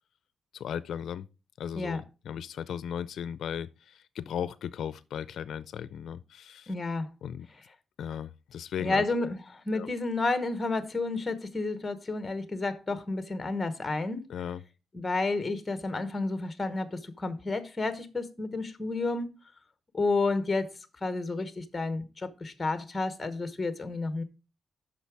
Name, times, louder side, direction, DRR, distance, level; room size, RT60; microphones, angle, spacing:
voice 1, 0.5-1.3 1.6-6.7 7.2-7.5 8.0-9.0 9.7-9.9 14.3-14.6, left 8 dB, 80° left, 0.4 m, -36 dB
voice 2, 6.7-7.1 8.8-14.2 14.9-19.3 19.9-20.7 21.0-24.2, left 3 dB, 20° left, 0.9 m, -31 dB
8.4 x 6.0 x 4.7 m
wide cardioid pair, 160°, 0 cm